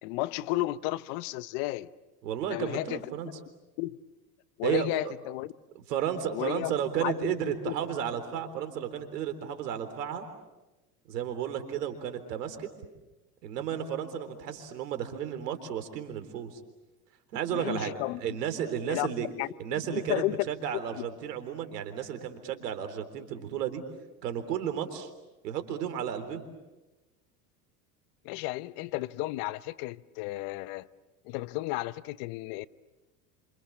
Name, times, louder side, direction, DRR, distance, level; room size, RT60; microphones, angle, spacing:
voice 1, 0.0-1.9 2.5-3.3 3.8-4.0 4.6-5.5 6.3-6.7 7.0-7.7 17.5-18.4 18.9-19.1 19.4-20.4 21.0-21.1 28.2-30.9 31.2-32.7, left 18 dB, 65° left, 1.1 m, -33 dB
voice 2, 2.2-3.3 4.6-4.9 5.9-10.3 11.1-12.7 13.4-16.6 17.3-17.9 18.2-19.3 19.6-23.8 24.2-25.1 25.4-26.4, right 9 dB, 85° right, 3.7 m, -33 dB
29.0 x 27.0 x 7.3 m
hypercardioid pair, 95°, 47 cm